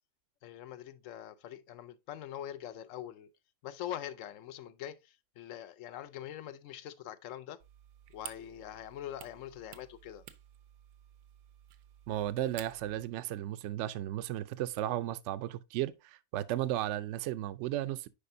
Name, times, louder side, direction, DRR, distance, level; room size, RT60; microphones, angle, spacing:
voice 1, 0.4-3.3 3.6-7.6 8.1-10.2, left 11 dB, 65° left, 0.9 m, -43 dB
sound 1, 7.6-13.0, right 11 dB, 85° right, 1.2 m, -52 dB
voice 2, 12.1-15.9 16.3-18.1, right 13 dB, 65° right, 0.7 m, -34 dB
10.0 x 4.3 x 2.6 m
omnidirectional pair, 1.6 m